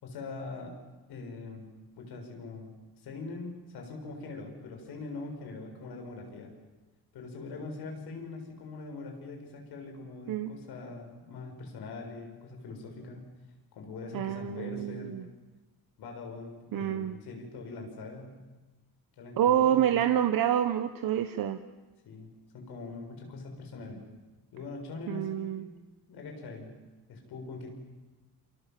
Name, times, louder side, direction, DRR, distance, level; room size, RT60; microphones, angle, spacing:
voice 1, 0.0-0.8 1.1-6.5 7.1-13.3 13.7-15.2 16.0-18.4 19.2-20.1 22.1-24.0 24.5-25.7 26.1-26.7 27.1-27.7, left 3 dB, 85° left, 3 dB, 7.0 m, -42 dB
voice 2, 14.1-15.3 16.7-17.2 19.4-21.6 25.1-25.6, right 10 dB, 65° right, 8 dB, 1.2 m, -27 dB
27.5 x 27.0 x 7.7 m, 1.2 s
cardioid pair, 160°, 38 cm